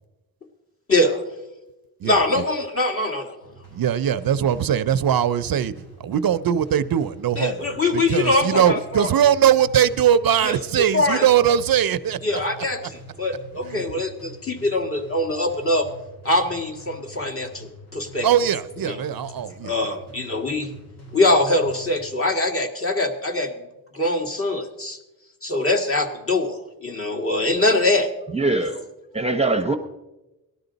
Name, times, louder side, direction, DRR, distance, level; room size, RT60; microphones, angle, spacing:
voice 1, 0.9-1.2 2.0-3.4 7.4-9.1 10.4-10.5 10.9-11.2 12.2-12.8 13.2-15.9 16.2-18.3 19.6-20.7 21.1-23.7 23.9-25.0 25.4-28.1 28.7-28.8, left 2 dB, 35° left, 1 dB, 1.9 m, -23 dB
voice 2, 2.0-2.4 3.7-5.7 6.0-12.4 13.6-13.8 18.2-20.0, right 9 dB, 65° right, 14 dB, 0.6 m, -21 dB
sound 1, 3.4-22.4, right 1 dB, 85° left, 4.9 m, -45 dB
voice 3, 28.3-28.8 29.1-29.8, right 2 dB, 15° right, 6 dB, 0.7 m, -22 dB
18.5 x 12.5 x 4.0 m, 1.0 s
wide cardioid pair, 105°, 38 cm